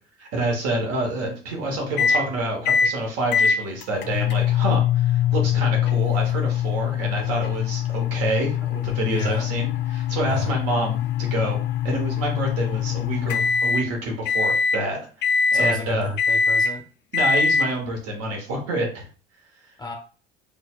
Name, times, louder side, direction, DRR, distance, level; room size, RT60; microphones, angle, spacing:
voice 1, 0.2-11.6 11.8-16.1 17.1-19.1, right 1 dB, 55° right, 1 dB, 1.3 m, -28 dB
sound 1, 2.0-2.2 2.7-2.9 3.3-13.9 14.3-14.8 15.2-15.8 16.2-16.7 17.1-17.7, left 7 dB, 35° left, 0.4 m, -23 dB
voice 2, 9.0-9.5 10.2-10.5 15.5-16.8 19.8-19.9, equal, 15° left, 2 dB, 1.0 m, -32 dB
4.2 x 2.6 x 2.4 m, 0.38 s
figure-of-eight pair, 65°, 30 cm